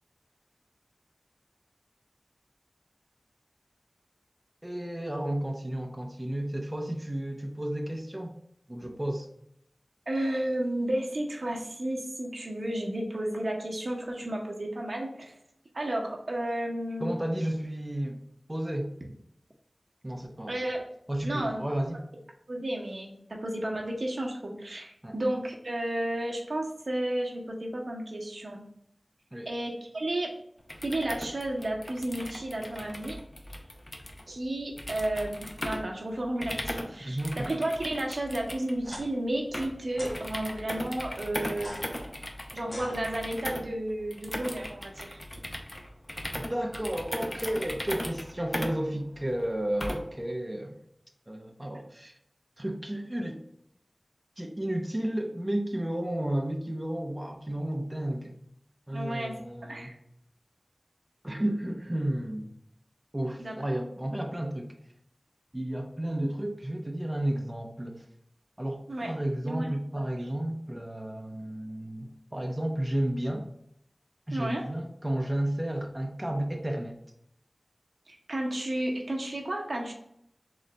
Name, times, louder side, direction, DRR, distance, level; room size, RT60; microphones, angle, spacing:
voice 1, 4.6-8.3 8.7-9.3 17.0-18.2 18.5-18.9 20.0-20.6 21.1-22.0 25.0-25.2 29.3-29.5 37.0-37.5 46.3-50.8 51.3-52.1 52.6-53.4 54.4-58.4 58.9-59.9 61.2-62.5 63.1-64.7 65.5-68.0 68.6-73.5 74.3-77.0, right 1 dB, 20° right, 2 dB, 0.6 m, -32 dB
voice 2, 10.1-15.4 15.7-17.1 20.5-20.8 21.2-21.6 22.5-28.6 29.5-30.3 30.8-33.2 34.3-41.8 42.5-45.2 58.9-59.4 59.6-59.9 63.4-63.5 68.9-69.1 69.4-69.7 74.3-74.7 78.1-79.9, right 1 dB, 80° right, 0 dB, 0.8 m, -32 dB
sound 1, 30.6-50.2, left 1 dB, 30° left, 0.6 m, -38 dB
sound 2, 38.8-39.0 39.9-40.2 41.5-43.5, left 1 dB, 75° left, 1.3 m, -43 dB
3.9 x 3.1 x 3.3 m, 0.74 s
wide cardioid pair, 40°, 0 cm